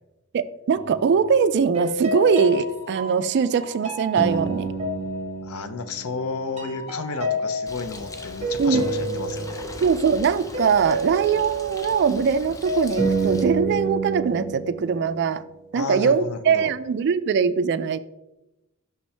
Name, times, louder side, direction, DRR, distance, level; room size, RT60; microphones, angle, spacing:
voice 1, 0.3-4.7 8.6-8.9 9.8-15.4 15.7-18.0, right 6 dB, 50° right, 15 dB, 0.3 m, -21 dB
sound 1, 0.7-1.3 1.7-6.3 6.6-15.3, right 1 dB, 30° right, 1.3 m, -29 dB
voice 2, 5.4-9.6 15.7-16.7, left 4 dB, 85° left, 10 dB, 0.6 m, -32 dB
Bird, 7.7-13.5, left 2 dB, 15° left, 0.5 m, -41 dB
6.1 x 5.4 x 3.3 m, 0.95 s
head